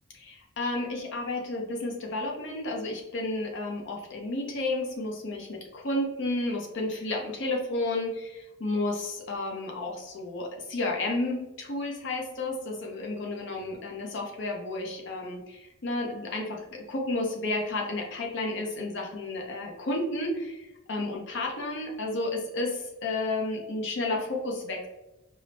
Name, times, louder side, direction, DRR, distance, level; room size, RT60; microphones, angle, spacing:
voice 1, 0.2-24.9, left 2 dB, 55° left, 0 dB, 0.6 m, -32 dB
4.8 x 2.0 x 2.6 m, 0.97 s
head